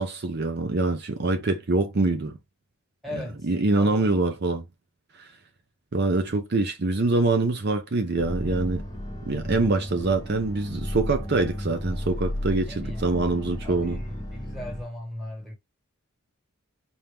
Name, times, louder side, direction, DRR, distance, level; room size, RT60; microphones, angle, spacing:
voice 1, 0.0-2.4 3.1-4.7 5.2-5.3 5.9-8.8 9.3-14.0, right 3 dB, 50° right, 0.6 m, -25 dB
voice 2, 3.0-3.5 3.8-4.1 12.7-15.5, left 1 dB, ahead, 1.6 m, -39 dB
sound 1, 8.2-14.8, left 1 dB, 15° left, 1.1 m, -33 dB
4.4 x 2.6 x 3.4 m
head